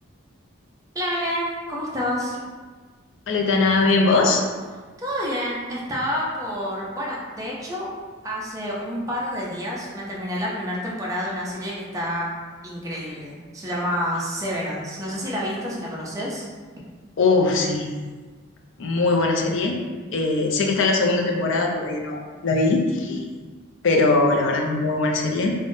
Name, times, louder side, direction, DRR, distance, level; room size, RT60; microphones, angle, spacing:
voice 1, 0.9-2.4 5.0-7.9 8.2-12.3 12.6-16.5, equal, 15° right, -4 dB, 0.4 m, -28 dB
voice 2, 3.3-4.4 17.2-17.9 18.8-19.8 20.1-23.2 23.8-25.6, left 3 dB, 60° left, 2 dB, 0.4 m, -21 dB
3.3 x 2.1 x 2.6 m, 1.4 s
head